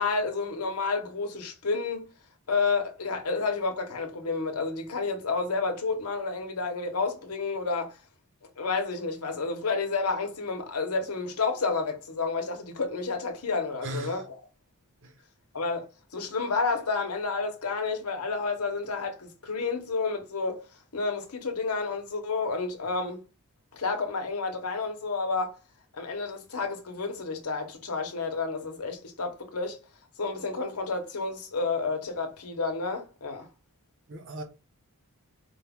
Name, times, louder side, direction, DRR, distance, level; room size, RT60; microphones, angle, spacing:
voice 1, 0.0-2.0 2.5-8.0 8.6-14.2 15.5-15.9 16.1-20.6 20.9-23.2 23.7-25.6 25.9-29.8 30.2-33.5, left 4 dB, 80° left, 1.0 m, -30 dB
voice 2, 13.8-14.2 15.0-15.1 34.1-34.4, right 1 dB, 55° right, 0.9 m, -37 dB
4.5 x 2.3 x 3.5 m
head